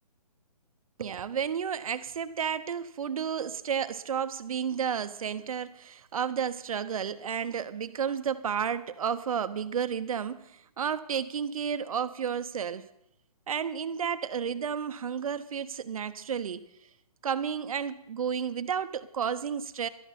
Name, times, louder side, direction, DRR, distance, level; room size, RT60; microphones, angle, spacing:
voice 1, 1.0-12.9 13.5-16.7 17.2-19.9, right 7 dB, 60° right, 12 dB, 0.9 m, -32 dB
17.0 x 12.5 x 4.2 m, 0.77 s
figure-of-eight pair, 140°, 20 cm